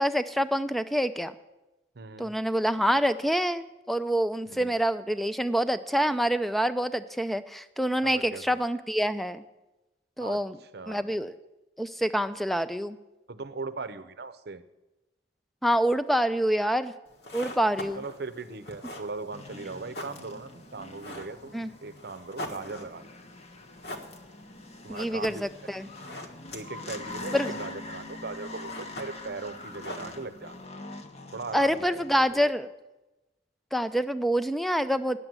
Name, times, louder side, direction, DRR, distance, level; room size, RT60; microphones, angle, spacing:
voice 1, 0.0-1.3 2.2-9.4 10.2-10.6 10.9-11.3 11.8-13.0 15.6-16.9 17.3-18.0 21.5-21.7 24.9-25.9 27.3-27.5 31.5-32.7 33.7-35.2, equal, ahead, 12 dB, 0.4 m, -26 dB
voice 2, 1.9-2.3 4.5-4.7 8.0-8.6 10.2-11.2 13.3-14.6 18.0-23.1 24.8-25.4 26.5-30.6 31.3-32.0 32.3-32.4, right 3 dB, 60° right, 13 dB, 0.7 m, -39 dB
sound 1, 17.1-30.7, left 1 dB, 60° left, 1.4 m, -44 dB
sound 2, 19.3-32.5, left 2 dB, 35° left, 0.9 m, -44 dB
9.9 x 7.5 x 9.4 m, 1.0 s
head